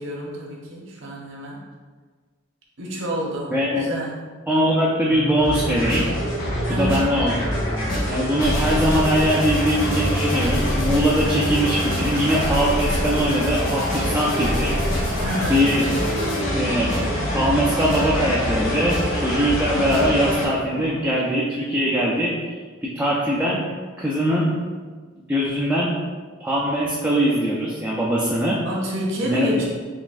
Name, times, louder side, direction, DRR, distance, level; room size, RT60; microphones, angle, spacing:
voice 1, 0.0-1.6 2.8-4.2 6.7-7.1 15.2-15.7 28.6-29.6, equal, 70° right, -4 dB, 0.9 m, -28 dB
voice 2, 3.5-3.9 4.5-6.1 6.8-7.4 8.1-14.8 15.5-15.8 16.5-22.3 22.8-23.6 24.0-24.5 25.3-25.9 26.4-28.6 29.2-29.6, equal, 5° right, -6 dB, 0.4 m, -21 dB
sound 1, 5.1-21.1, right 1 dB, 30° left, 0.9 m, -34 dB
sound 2, 5.4-20.5, equal, 75° left, 1.3 m, -24 dB
3.9 x 3.5 x 2.4 m, 1.5 s
head